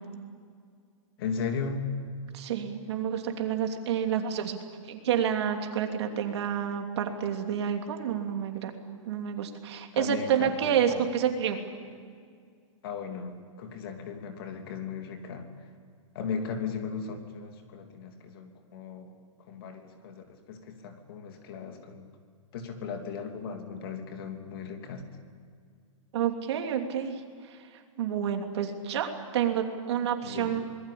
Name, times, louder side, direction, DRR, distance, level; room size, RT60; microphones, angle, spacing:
voice 1, 1.2-1.9 9.9-11.0 12.8-15.5 16.1-19.1 19.5-22.1 22.5-25.0 30.2-30.6, left 6 dB, 45° left, 5 dB, 3.1 m, -37 dB
voice 2, 2.3-4.6 4.9-8.7 9.0-11.6 26.1-27.2 28.0-30.6, right 8 dB, 55° right, 4 dB, 3.0 m, -29 dB
26.0 x 20.5 x 8.6 m, 2.1 s
hypercardioid pair, 165°, 17 cm